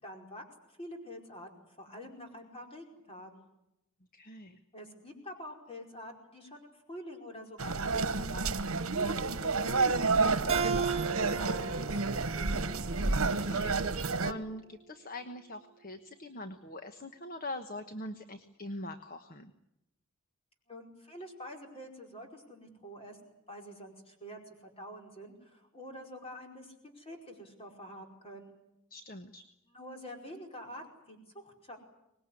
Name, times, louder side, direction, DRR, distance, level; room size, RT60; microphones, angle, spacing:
voice 1, 0.0-0.4 0.8-3.5 4.7-8.7 9.0-12.7 20.7-23.2 23.5-28.5 29.7-31.8, equal, 25° left, 2 dB, 4.9 m, -47 dB
voice 2, 4.1-4.6 13.0-19.5 28.9-29.4, left 1 dB, 40° left, 8 dB, 1.2 m, -43 dB
sound 1, 7.6-14.3, right 3 dB, 75° right, 1.2 m, -30 dB
Keyboard (musical), 10.5-13.7, right 6 dB, 25° right, 2.5 m, -36 dB
24.5 x 20.5 x 9.8 m, 0.85 s
head